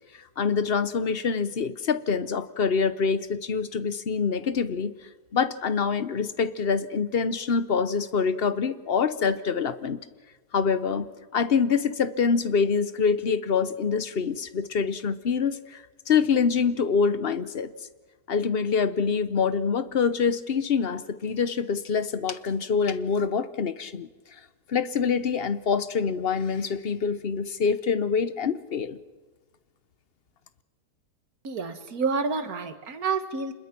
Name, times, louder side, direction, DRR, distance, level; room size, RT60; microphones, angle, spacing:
voice 1, 0.4-4.9 5.3-10.0 10.5-17.7 18.3-24.1 24.7-29.0, left 5 dB, 45° left, 13 dB, 0.9 m, -25 dB
voice 2, 31.4-33.5, right 4 dB, 60° right, 9 dB, 1.9 m, -29 dB
26.5 x 21.0 x 6.0 m, 1.3 s
omnidirectional pair, 1.8 m